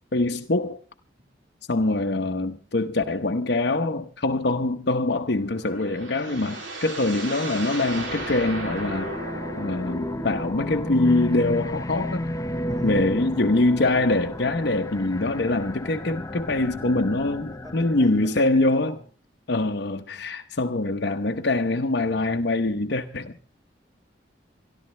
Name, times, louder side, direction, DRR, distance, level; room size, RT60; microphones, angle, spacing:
voice 1, 0.1-0.8 1.7-9.1 9.6-12.2 12.8-18.9 19.5-23.3, left 2 dB, 60° left, 0.9 m, -24 dB
voice 2, 1.8-2.2 12.7-12.9 17.5-19.0 20.1-20.3, equal, 20° right, 5.1 m, -46 dB
sound 1, 5.3-10.5, right 2 dB, 90° right, 2.9 m, -35 dB
sound 2, 7.8-18.4, left 1 dB, 20° left, 0.7 m, -33 dB
28.0 x 11.5 x 3.2 m
head